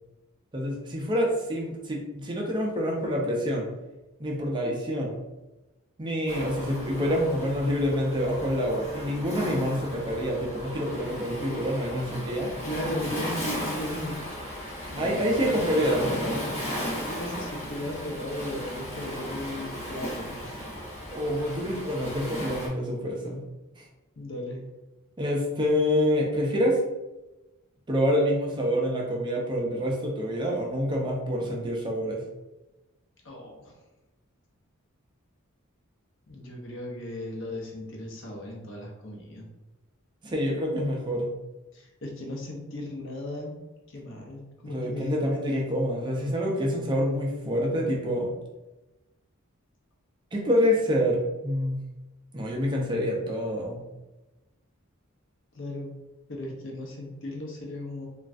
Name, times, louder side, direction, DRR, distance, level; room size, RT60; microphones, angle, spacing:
voice 1, 0.5-3.7 4.2-5.2 6.0-12.5 15.0-16.5 21.1-23.4 23.8-23.9 25.2-26.8 27.9-32.2 40.2-41.3 44.7-48.3 50.3-51.8 52.3-53.8, equal, 20° right, -1 dB, 0.4 m, -27 dB
Waves surf, 6.3-22.7, equal, 30° left, 0.9 m, -35 dB
voice 2, 12.6-14.2 14.9-15.6 17.1-20.6 24.2-24.6 33.2-33.7 36.3-39.5 41.7-43.5 43.9-45.2 55.5-55.9 56.3-58.1, left 1 dB, 60° left, 0 dB, 0.7 m, -36 dB
3.1 x 2.4 x 2.5 m, 1.0 s
head